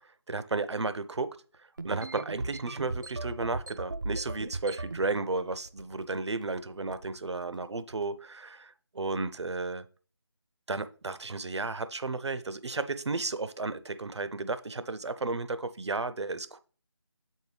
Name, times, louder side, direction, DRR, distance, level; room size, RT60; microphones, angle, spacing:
voice 1, 0.3-1.3 1.8-9.8 10.7-16.6, right 3 dB, 75° right, 13 dB, 0.7 m, -33 dB
sound 1, 1.8-5.1 5.5-6.0 6.3-6.6 6.9-7.2 7.8-8.0, right 2 dB, 45° right, 0.4 m, -37 dB
7.8 x 4.5 x 3.3 m, 0.39 s
figure-of-eight pair, 170°, 14 cm